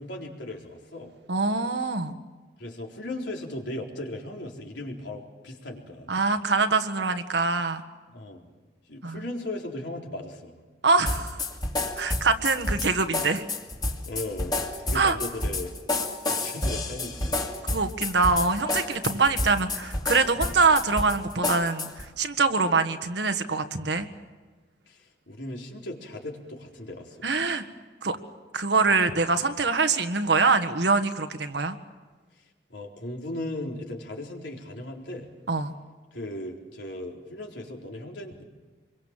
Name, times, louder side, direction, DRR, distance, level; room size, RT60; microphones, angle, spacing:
voice 1, 0.0-1.1 2.6-6.1 8.1-8.5 8.9-10.6 14.1-15.7 16.3-17.4 24.9-27.3 32.7-35.3 36.1-38.4, left 1 dB, 80° left, 0 dB, 4.1 m, -37 dB
voice 2, 1.3-2.1 6.1-7.8 9.0-9.2 10.8-11.4 12.0-13.4 14.9-15.2 17.7-24.1 27.2-27.6 28.0-28.2 28.5-31.8 35.5-35.7, right 4 dB, 70° right, 8 dB, 1.6 m, -24 dB
sound 1, 11.1-22.1, left 2 dB, 25° left, 2.4 m, -30 dB
27.0 x 23.0 x 7.5 m, 1.3 s
head